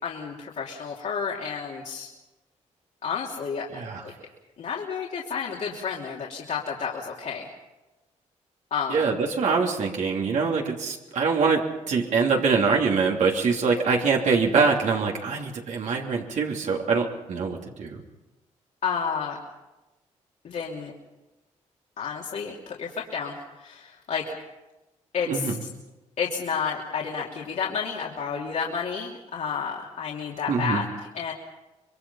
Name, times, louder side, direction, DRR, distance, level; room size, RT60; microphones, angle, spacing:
voice 1, 0.0-2.1 3.0-3.7 4.0-4.1 4.6-7.5 8.7-9.0 18.8-19.4 20.4-20.9 22.0-24.3 25.1-25.7 26.2-30.8 31.1-31.3, left 6 dB, 65° left, -3 dB, 3.0 m, -31 dB
voice 2, 3.7-4.0 8.9-18.0 25.3-25.5 30.5-30.8, right 5 dB, 70° right, 0 dB, 3.2 m, -24 dB
25.5 x 22.0 x 5.7 m, 1.1 s
cardioid pair, 75°, 13 cm